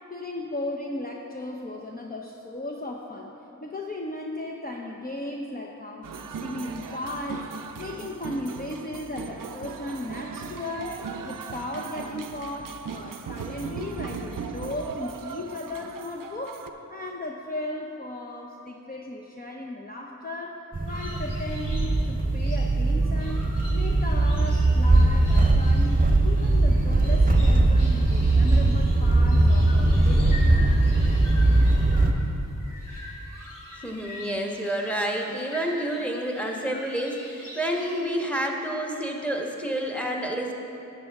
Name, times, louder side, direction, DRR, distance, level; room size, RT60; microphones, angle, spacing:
voice 1, 0.1-3.3 3.6-7.5 7.8-16.6 16.9-23.4 23.7-30.3, left 1 dB, 25° left, 0 dB, 0.7 m, -36 dB
sound 1, 6.0-16.7, right 6 dB, 75° right, 0.5 m, -38 dB
sound 2, 20.7-32.1, right 2 dB, 25° right, 0.9 m, -20 dB
sound 3, 20.9-38.1, left 1 dB, 70° left, 1.8 m, -44 dB
voice 2, 33.8-40.5, right 1 dB, 5° left, 0 dB, 1.3 m, -29 dB
11.5 x 8.1 x 3.5 m, 2.9 s
cardioid pair, 45°, 33 cm